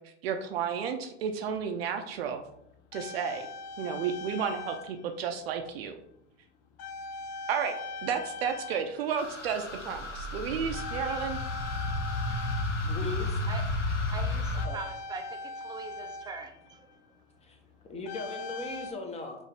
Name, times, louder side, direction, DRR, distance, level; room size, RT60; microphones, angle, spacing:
voice 1, 0.2-2.4 2.9-3.5 3.8-6.0 7.5-7.7 8.0-11.4, right 7 dB, 60° right, 6 dB, 0.6 m, -32 dB
sound 1, 1.5-1.6 2.5-5.1 5.3-5.6 6.8-9.5 9.8-10.2 10.7-13.4 14.6-16.9 18.1-18.9, left 3 dB, 50° left, 0.7 m, -41 dB
sound 2, 9.2-14.7, left 2 dB, 90° left, 0.6 m, -32 dB
voice 2, 12.8-13.4 14.6-14.8 17.4-17.6 17.9-19.4, left 3 dB, 20° left, 2 dB, 1.0 m, -38 dB
voice 3, 14.1-16.9, right 4 dB, 10° right, 5 dB, 0.5 m, -42 dB
5.4 x 2.6 x 3.5 m, 0.76 s
figure-of-eight pair, 80°, 35 cm